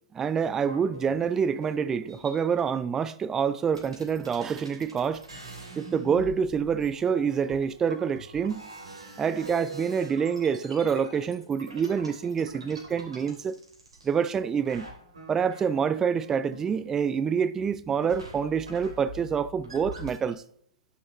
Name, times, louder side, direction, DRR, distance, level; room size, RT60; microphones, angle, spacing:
voice 1, 0.1-5.2 5.8-8.6 9.2-13.6 14.0-14.9 15.3-20.4, right 6 dB, 15° right, 0.3 m, -27 dB
sound 1, 0.6-2.6 3.4-3.5 3.7-14.4 14.6-17.3 17.5-20.3, right 2 dB, 75° right, 3.2 m, -45 dB
11.0 x 6.4 x 3.0 m
figure-of-eight pair, 115°, 3 cm